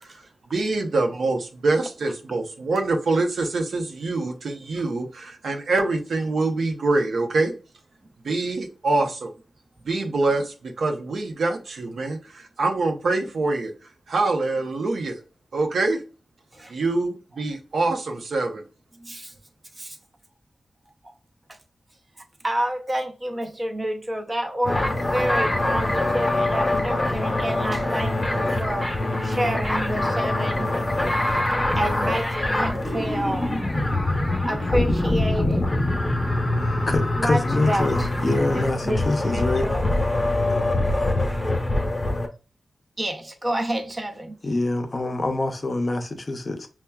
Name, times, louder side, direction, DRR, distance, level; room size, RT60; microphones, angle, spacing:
voice 1, 0.5-7.5 8.2-9.3 9.8-13.7 14.1-15.2 15.5-16.0 16.7-18.6, right 3 dB, 85° right, 0.6 m, -25 dB
voice 2, 18.9-19.3 19.8-20.0 21.0-21.1 21.5-21.6 22.2-30.7 31.8-33.6 34.4-35.7 36.6-36.9 37.2-39.9 43.0-44.3, right 1 dB, 30° right, 0.7 m, -29 dB
sound 1, 24.6-42.3, left 1 dB, 20° left, 0.8 m, -24 dB
voice 3, 36.9-39.7 44.4-46.7, left 2 dB, 40° left, 0.5 m, -25 dB
5.6 x 2.2 x 2.2 m
wide cardioid pair, 85°, 0 cm